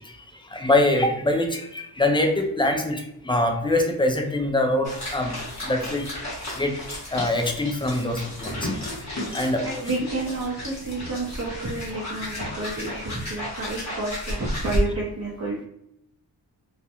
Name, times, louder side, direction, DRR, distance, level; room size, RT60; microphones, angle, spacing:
voice 1, 0.0-5.3 5.6-6.1 6.6-8.8 9.3-9.6, left 1 dB, 15° left, 3 dB, 0.3 m, -24 dB
sound 1, 4.8-14.8, left 1 dB, 40° left, 1.0 m, -33 dB
voice 2, 8.4-8.9 9.6-15.7, right 2 dB, 40° right, -6 dB, 0.6 m, -30 dB
2.4 x 2.1 x 2.8 m, 0.76 s
wide cardioid pair, 90°, 42 cm